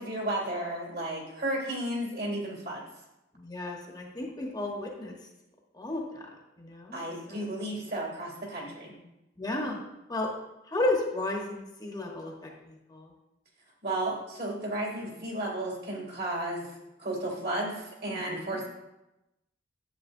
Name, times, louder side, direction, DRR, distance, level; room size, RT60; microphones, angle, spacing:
voice 1, 0.0-2.9 6.9-9.0 13.8-16.7 17.0-18.7, right 1 dB, 55° right, -2 dB, 2.6 m, -33 dB
voice 2, 3.3-5.2 5.7-6.3 6.6-7.0 7.3-7.4 9.4-9.8 10.1-10.3 10.7-13.1 18.1-18.6, left 2 dB, 20° left, -1 dB, 1.1 m, -33 dB
10.0 x 7.7 x 2.6 m, 0.94 s
head